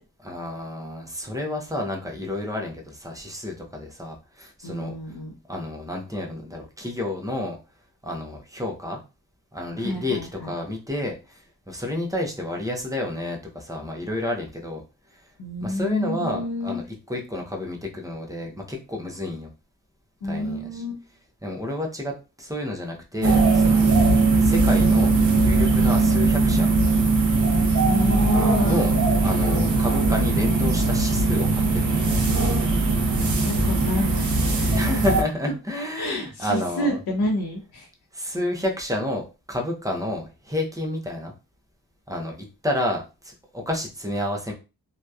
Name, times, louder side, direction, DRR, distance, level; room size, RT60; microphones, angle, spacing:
voice 1, 0.2-5.2 5.5-7.6 8.0-9.0 9.5-14.8 15.1-15.3 15.6-19.5 20.2-20.8 21.4-23.9 24.4-26.8 28.6-29.0 29.2-32.2 34.7-37.0 38.1-41.3 42.1-42.3 42.6-44.5, left 1 dB, 10° right, 1 dB, 0.5 m, -30 dB
voice 2, 4.6-5.3 9.8-10.5 15.4-16.8 20.2-21.0 27.9-28.8 33.4-34.8 36.0-37.9, left 1 dB, 60° left, -2 dB, 0.7 m, -28 dB
sound 1, 23.2-35.2, right 3 dB, 40° right, 0.7 m, -20 dB
2.7 x 2.2 x 2.3 m, 0.30 s
wide cardioid pair, 100°, 44 cm